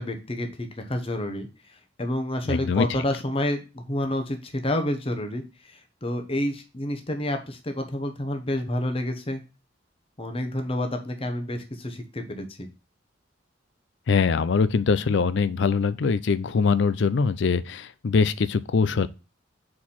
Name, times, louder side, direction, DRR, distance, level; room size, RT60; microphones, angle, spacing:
voice 1, 0.0-9.4 10.2-12.7, left 1 dB, 30° left, 1.0 m, -29 dB
voice 2, 2.5-2.9 14.1-19.1, left 5 dB, 60° left, 0.4 m, -22 dB
4.7 x 4.3 x 5.5 m
head